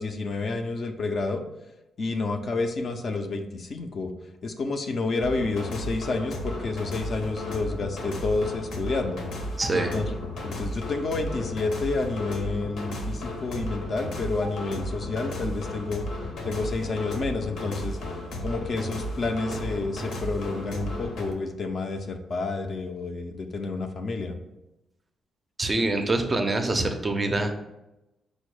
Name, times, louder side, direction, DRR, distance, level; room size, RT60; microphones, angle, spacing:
voice 1, 0.0-1.4 2.0-4.1 4.4-9.3 9.7-10.1 10.4-16.1 16.4-18.0 18.4-24.4, left 3 dB, 40° left, 6 dB, 0.4 m, -29 dB
sound 1, 5.2-21.3, left 1 dB, 80° left, 0.8 m, -34 dB
voice 2, 9.6-10.0 25.6-27.5, right 2 dB, 20° right, 5 dB, 0.4 m, -25 dB
5.2 x 2.1 x 4.6 m, 0.94 s
cardioid pair, 145°, 0 cm